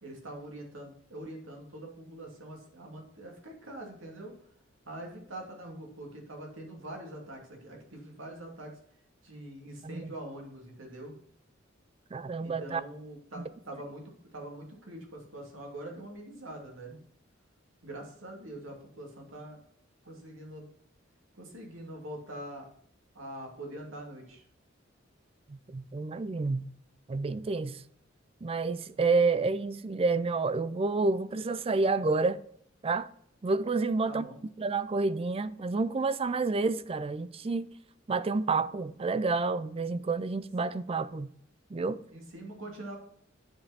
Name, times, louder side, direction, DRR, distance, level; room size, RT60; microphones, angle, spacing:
voice 1, 0.0-4.3 4.8-8.7 9.2-11.1 12.4-17.0 17.8-19.6 20.0-20.7 21.3-22.7 23.1-24.4 34.1-34.4 42.1-43.0, right 1 dB, 85° right, 2.6 m, -44 dB
voice 2, 12.1-12.8 13.4-13.5 25.5-26.7 27.1-27.8 28.4-32.4 32.8-33.1 33.4-37.7 38.1-41.3 41.7-42.0, right 3 dB, 30° right, 0.4 m, -29 dB
9.3 x 5.4 x 4.2 m
head